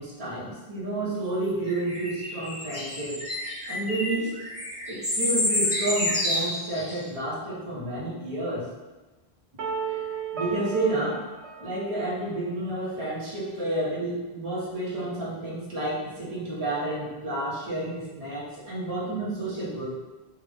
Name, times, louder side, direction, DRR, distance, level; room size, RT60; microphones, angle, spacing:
voice 1, 0.0-3.2 3.7-4.3 4.9-8.7 9.9-10.0 10.3-11.2 11.6-19.9, right 2 dB, 35° right, -7 dB, 1.1 m, -30 dB
sound 1, 1.7-7.0, left 1 dB, 10° right, 0.6 m, -29 dB
sound 2, 9.6-12.5, right 6 dB, 90° right, 0.9 m, -35 dB
3.6 x 2.5 x 3.4 m, 1.1 s
omnidirectional pair, 1.0 m